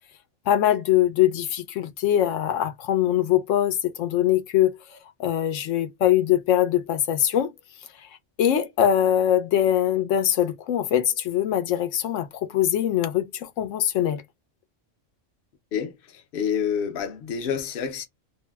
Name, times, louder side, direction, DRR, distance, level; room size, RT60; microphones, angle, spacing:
voice 1, 0.5-4.8 5.2-7.5 8.4-14.2, left 11 dB, 85° left, 1.0 m, -22 dB
voice 2, 16.3-18.0, left 7 dB, 55° left, 0.8 m, -27 dB
2.7 x 2.0 x 3.2 m
omnidirectional pair, 1.3 m